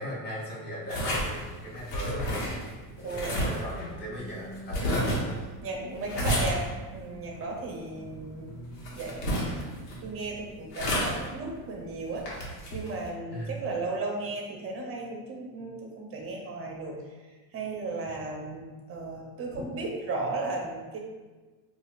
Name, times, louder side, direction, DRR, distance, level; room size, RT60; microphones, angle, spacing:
voice 1, 0.0-5.5 6.2-6.6 13.3-13.7, equal, 20° left, -7 dB, 1.3 m, -38 dB
sound 1, 0.9-13.1, equal, 85° left, 1.2 m, -33 dB
voice 2, 3.0-3.5 4.8-5.3 5.6-6.6 6.9-8.5 8.9-17.0 17.5-21.0, right 3 dB, 30° right, 0 dB, 0.7 m, -35 dB
4.8 x 2.5 x 2.4 m, 1.3 s
cardioid pair, 130°, 49 cm